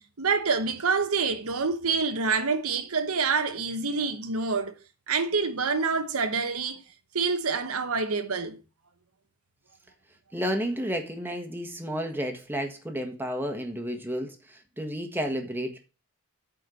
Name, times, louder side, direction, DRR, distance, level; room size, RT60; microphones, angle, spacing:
voice 1, 0.2-4.7 5.1-6.8 7.1-8.6, right 4 dB, 80° right, 1.1 m, -27 dB
voice 2, 10.3-15.8, equal, 10° right, 1.4 m, -31 dB
8.8 x 4.7 x 7.0 m
head